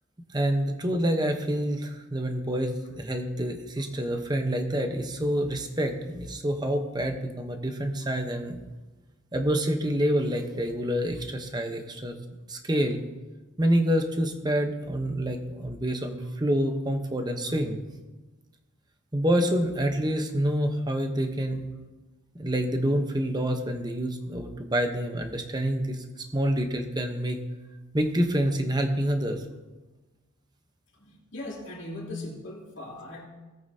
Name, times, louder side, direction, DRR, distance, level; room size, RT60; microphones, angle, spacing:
voice 1, 0.3-8.6 9.3-12.2 12.5-13.0 13.6-17.8 19.1-21.6 22.4-26.0 26.3-27.4 27.9-29.4, equal, 20° right, 5 dB, 0.9 m, -27 dB
voice 2, 31.0-33.3, left 2 dB, 55° left, -3 dB, 2.8 m, -39 dB
18.5 x 8.7 x 2.8 m, 1.2 s
head